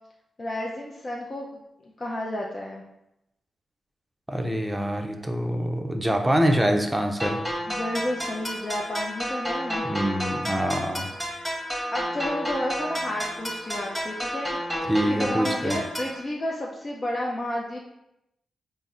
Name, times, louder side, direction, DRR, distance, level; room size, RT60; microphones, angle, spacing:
voice 1, 0.4-1.6 2.0-2.8 7.7-9.9 11.9-14.6 15.1-17.8, left 1 dB, 45° left, -2 dB, 0.5 m, -31 dB
voice 2, 4.3-7.4 9.8-11.1 14.9-15.8, equal, 15° right, 4 dB, 0.5 m, -25 dB
sound 1, 7.2-16.2, equal, ahead, 1.0 m, -31 dB
4.0 x 2.0 x 3.6 m, 0.86 s
cardioid pair, 50°, 0 cm